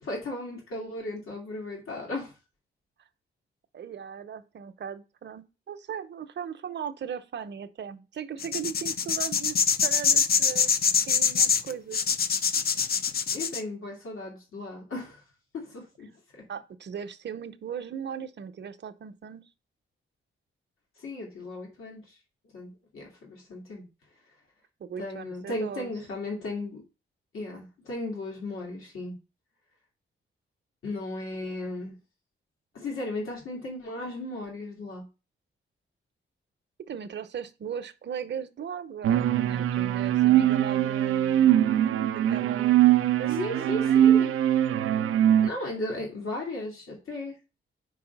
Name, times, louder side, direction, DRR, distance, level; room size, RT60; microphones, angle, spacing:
voice 1, 0.0-2.3 13.3-15.2 15.5-16.1 16.3-16.4 21.0-22.2 22.5-23.9 25.0-26.8 27.3-29.2 30.8-32.0 32.7-35.0 43.3-44.3 45.4-47.4, left 2 dB, 80° left, 2.7 m, -36 dB
voice 2, 3.7-10.8 11.0-12.0 16.5-19.5 24.8-25.9 36.9-41.6 42.3-44.3, right 7 dB, 55° right, 0.8 m, -38 dB
sound 1, 8.4-13.6, left 6 dB, 45° left, 0.6 m, -24 dB
sound 2, 39.0-45.5, right 11 dB, 85° right, 0.5 m, -22 dB
4.8 x 4.7 x 5.9 m
cardioid pair, 95°, 21 cm